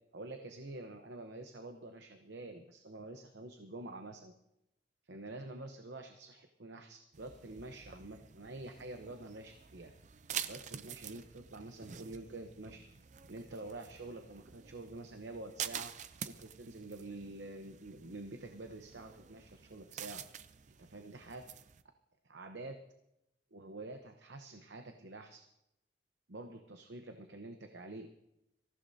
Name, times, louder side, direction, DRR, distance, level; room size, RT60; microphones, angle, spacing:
voice 1, 0.1-4.3 5.1-9.9 10.5-12.9 13.3-16.0 16.2-20.2 20.7-21.4 22.2-22.8 23.5-25.4 26.3-28.1, right 2 dB, 75° right, 5 dB, 0.9 m, -47 dB
sound 1, 7.1-21.8, right 8 dB, 40° right, 0.5 m, -48 dB
25.0 x 15.0 x 2.7 m, 0.86 s
head